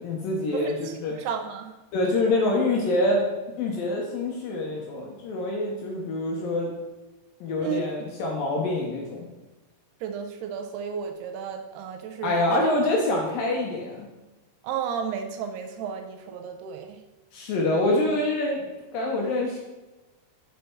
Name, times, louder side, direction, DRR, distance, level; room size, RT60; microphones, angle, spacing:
voice 1, 0.0-1.1 1.9-3.2 3.5-6.7 7.4-9.3 12.2-14.1 17.3-18.6 18.9-19.6, left 2 dB, 75° left, -1 dB, 2.2 m, -26 dB
voice 2, 0.5-1.7 7.6-7.9 10.0-12.6 14.6-17.0, right 7 dB, 80° right, 5 dB, 2.4 m, -33 dB
6.6 x 6.5 x 4.5 m, 1.1 s
omnidirectional pair, 5.1 m